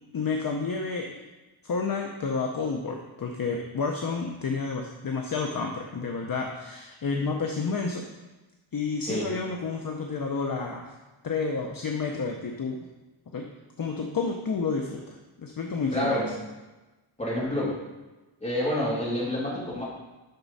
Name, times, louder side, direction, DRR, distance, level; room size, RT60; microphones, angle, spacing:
voice 1, 0.1-1.2 1.6-8.1 8.7-10.9 11.2-12.8 13.3-13.4 13.8-16.3, left 4 dB, 45° left, 2 dB, 0.8 m, -30 dB
voice 2, 15.9-16.3 17.2-17.8 18.4-19.8, left 1 dB, 15° left, -6 dB, 2.9 m, -28 dB
10.5 x 6.0 x 4.1 m, 1.1 s
wide cardioid pair, 155°, 49 cm